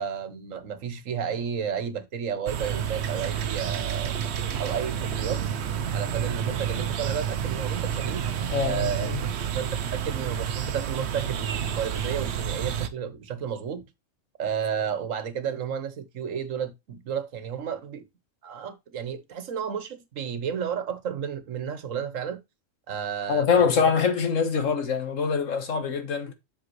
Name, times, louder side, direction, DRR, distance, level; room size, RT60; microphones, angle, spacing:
voice 1, 0.0-4.2 4.6-5.4 5.9-8.3 8.6-13.8 14.4-18.0 18.4-22.4 22.9-23.8, right 7 dB, 80° right, 1.4 m, -32 dB
sound 1, 2.5-12.9, right 8 dB, 60° right, 0.9 m, -29 dB
voice 2, 8.5-9.2 23.3-26.3, left 6 dB, 80° left, 1.6 m, -24 dB
7.8 x 6.7 x 3.1 m
omnidirectional pair, 1.3 m